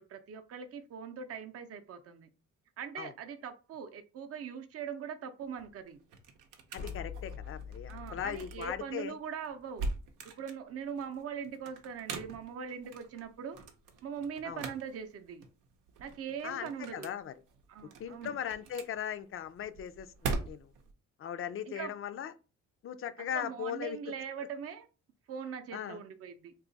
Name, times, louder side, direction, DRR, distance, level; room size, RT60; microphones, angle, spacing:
voice 1, 0.0-2.3 2.8-6.0 7.9-9.9 10.2-13.6 14.0-15.4 16.0-17.1 17.7-18.4 21.7-21.9 23.2-24.9 25.3-26.5, right 7 dB, 50° right, 0.6 m, -41 dB
sound 1, 5.4-20.9, right 3 dB, 90° right, 0.7 m, -43 dB
sound 2, 6.7-8.8, left 6 dB, 70° left, 0.8 m, -44 dB
voice 2, 6.7-9.2 14.4-14.6 16.4-17.3 18.0-20.7 21.2-22.3 22.8-24.0 25.7-26.0, left 9 dB, 45° left, 0.4 m, -38 dB
2.7 x 2.4 x 3.9 m
cardioid pair, 90°, 30 cm